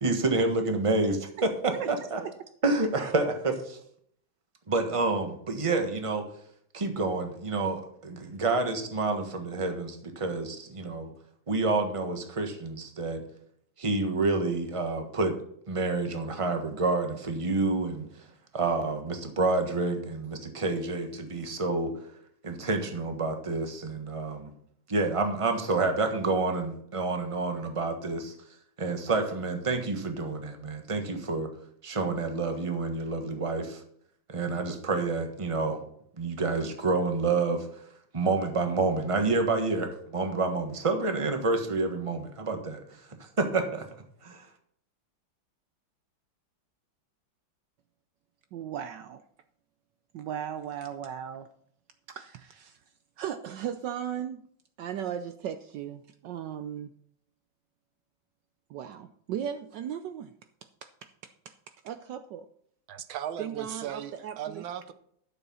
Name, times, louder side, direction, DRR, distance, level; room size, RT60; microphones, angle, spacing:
voice 1, 0.0-2.2 2.6-3.8 4.7-6.2 6.7-11.1 11.5-13.2 13.8-15.4 15.7-18.1 18.5-21.9 22.4-24.5 24.9-28.3 28.8-31.5 31.8-33.8 34.3-35.8 36.2-37.7 38.1-43.9 44.2-44.5, right 3 dB, 20° right, 1.3 m, -28 dB
voice 2, 48.5-49.2 50.1-51.5 52.1-52.8 53.2-54.4 54.8-56.9 58.7-60.3 60.8-61.5 61.8-62.5 63.4-64.6, right 9 dB, 70° right, 1.2 m, -37 dB
voice 3, 62.9-64.9, right 10 dB, 90° right, 1.6 m, -37 dB
12.0 x 7.1 x 5.6 m
omnidirectional pair, 2.1 m